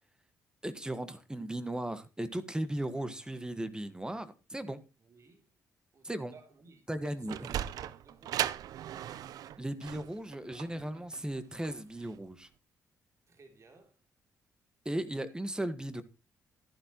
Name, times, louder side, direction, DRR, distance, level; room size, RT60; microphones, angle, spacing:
voice 1, 0.6-4.8 6.0-6.3 6.9-7.5 9.6-12.5 14.8-16.0, right 1 dB, 10° right, 1.5 m, -36 dB
voice 2, 5.0-5.5 5.9-8.7 13.3-14.0, right 3 dB, 50° right, 3.1 m, -59 dB
Sliding door, 7.0-12.2, right 11 dB, 75° right, 0.6 m, -37 dB
13.0 x 11.0 x 3.0 m
supercardioid pair, 65°, 6 cm